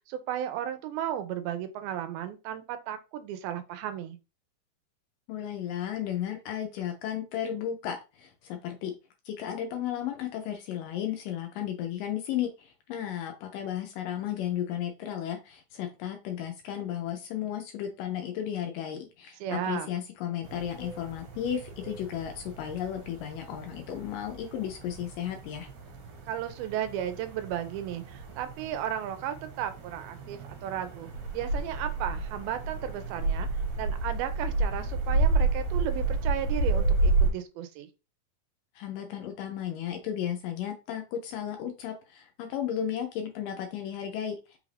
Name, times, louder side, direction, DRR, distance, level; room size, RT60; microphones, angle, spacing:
voice 1, 0.1-4.2 19.4-19.9 26.3-31.1 31.3-33.5 33.8-37.9, right 10 dB, 85° right, 2.5 m, -34 dB
voice 2, 5.3-8.9 9.3-25.7 38.8-44.4, left 10 dB, 80° left, 2.1 m, -34 dB
sound 1, 20.4-37.3, right 2 dB, 70° right, 2.6 m, -31 dB
5.6 x 2.5 x 3.2 m
omnidirectional pair, 4.3 m